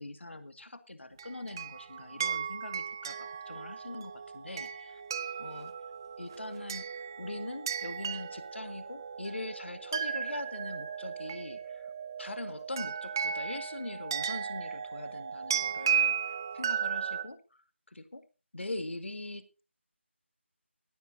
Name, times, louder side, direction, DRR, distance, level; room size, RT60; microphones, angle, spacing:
voice 1, 0.0-5.0 5.4-5.7 6.2-6.9 7.2-11.9 12.2-16.2 16.5-18.2 18.5-19.6, left 2 dB, 65° left, 10 dB, 2.0 m, -42 dB
sound 1, 1.2-17.2, right 7 dB, 20° right, 0.7 m, -35 dB
17.5 x 16.0 x 2.8 m, 0.33 s
figure-of-eight pair, 165°, 7 cm